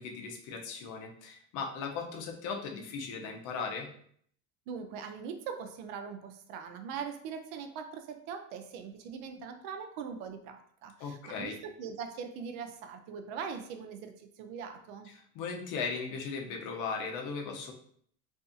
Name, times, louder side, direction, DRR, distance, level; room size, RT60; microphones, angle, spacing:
voice 1, 0.0-3.9 11.0-11.6 15.3-17.7, left 5 dB, 50° left, 2 dB, 0.6 m, -37 dB
voice 2, 4.7-15.1, right 6 dB, 75° right, 6 dB, 0.5 m, -41 dB
2.6 x 2.3 x 2.5 m, 0.62 s
supercardioid pair, 130°, 42 cm